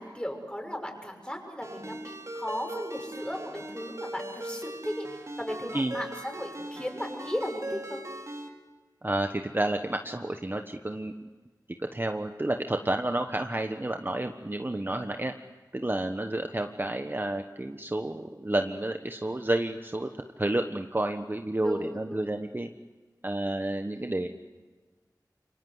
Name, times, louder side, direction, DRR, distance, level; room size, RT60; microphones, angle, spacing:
voice 1, 0.0-5.1 5.4-8.0 21.6-22.3 23.9-24.3, equal, 15° left, 3 dB, 6.4 m, -36 dB
Ringtone, 1.6-8.5, right 1 dB, 45° right, 3.8 m, -40 dB
voice 2, 9.0-11.3 11.8-15.3 15.7-20.1 20.4-22.7 23.2-24.3, right 1 dB, 30° right, 5 dB, 1.2 m, -30 dB
28.5 x 25.0 x 8.1 m, 1.4 s
wide cardioid pair, 60°, 7 cm